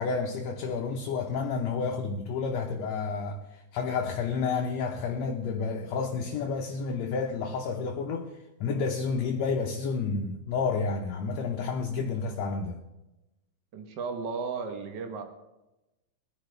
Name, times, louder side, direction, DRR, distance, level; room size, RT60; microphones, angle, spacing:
voice 1, 0.0-8.3 8.6-12.8, left 5 dB, 70° left, 1.8 m, -30 dB
voice 2, 13.7-15.2, right 5 dB, 70° right, 1.0 m, -34 dB
20.0 x 10.5 x 3.3 m
omnidirectional pair, 3.7 m